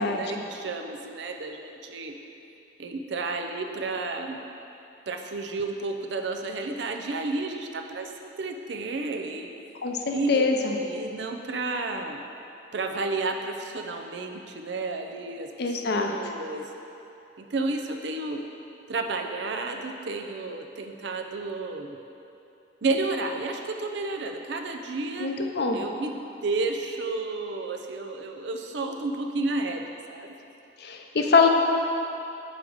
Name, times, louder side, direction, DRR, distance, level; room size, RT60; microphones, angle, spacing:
voice 1, 0.0-2.1 2.8-4.4 5.1-9.5 10.1-10.5 10.8-12.2 12.7-16.6 17.4-18.4 18.9-22.0 22.8-25.3 25.7-26.1 26.4-30.3, right 3 dB, 70° right, 4 dB, 0.5 m, -31 dB
voice 2, 9.8-10.8 15.6-16.1 25.2-25.8 30.8-31.5, left 4 dB, 60° left, 3 dB, 0.6 m, -23 dB
5.1 x 4.9 x 6.3 m, 2.8 s
head